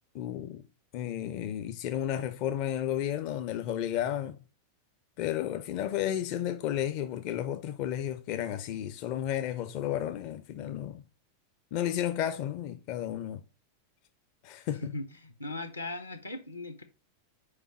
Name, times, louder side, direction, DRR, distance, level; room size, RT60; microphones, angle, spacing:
voice 1, 0.1-0.6 0.9-4.4 5.2-11.0 11.7-13.4 14.4-14.8, left 11 dB, 45° left, 0.5 m, -32 dB
voice 2, 14.7-16.8, left 2 dB, 80° left, 0.8 m, -39 dB
5.0 x 4.9 x 5.7 m
figure-of-eight pair, 90°, 0 cm